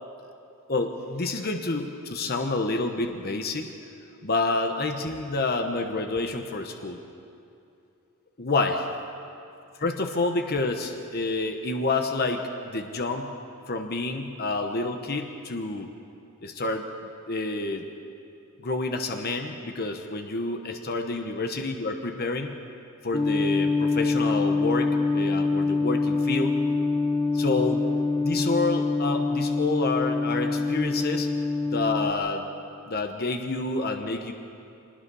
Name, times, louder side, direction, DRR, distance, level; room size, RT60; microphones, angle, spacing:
voice 1, 0.7-3.7 4.2-7.0 8.4-8.8 9.8-13.3 13.7-15.9 16.4-16.9 17.3-17.8 18.6-22.5 23.0-26.6 27.3-27.8 28.2-31.3 31.7-32.4 32.9-34.3, left 3 dB, 45° left, 4 dB, 1.1 m, -28 dB
sound 1, 23.1-32.1, left 3 dB, 20° left, 1.0 m, -25 dB
24.0 x 20.0 x 5.5 m, 2.6 s
head